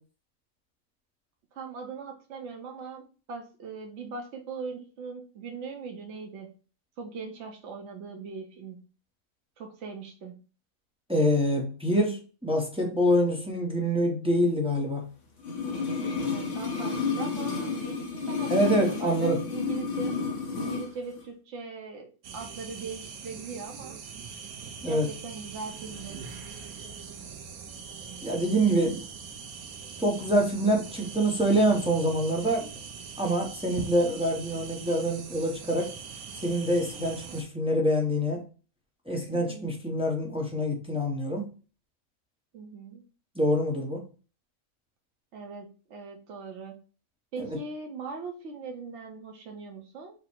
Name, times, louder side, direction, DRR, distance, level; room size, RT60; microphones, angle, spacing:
voice 1, 1.5-6.5 7.0-8.8 9.6-10.3 16.2-20.1 20.6-22.1 22.3-24.0 24.9-26.2 39.3-39.7 42.5-43.0 45.3-46.7 47.3-50.1, right 4 dB, 60° right, 2 dB, 1.0 m, -40 dB
voice 2, 11.1-12.2 12.4-15.0 18.5-19.4 24.8-25.1 28.2-29.0 30.0-32.7 33.2-35.9 36.4-38.4 39.1-41.5 43.4-44.0 47.4-47.5, equal, 5° right, 0 dB, 0.5 m, -25 dB
sound 1, 15.4-20.9 21.2-21.3, left 5 dB, 60° left, 1.3 m, -31 dB
sound 2, 22.2-37.4, right 6 dB, 90° right, 1.1 m, -42 dB
4.8 x 2.0 x 4.3 m, 0.36 s
omnidirectional pair, 1.5 m